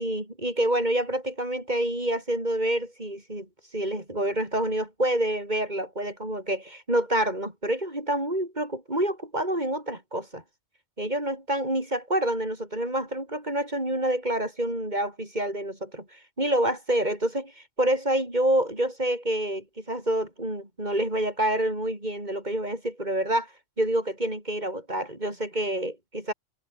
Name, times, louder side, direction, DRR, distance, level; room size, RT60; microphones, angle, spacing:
voice 1, 0.0-3.5 3.7-10.4 11.0-23.5 23.8-26.3, right 1 dB, 35° right, 6.3 m, -27 dB
omnidirectional pair, 1.3 m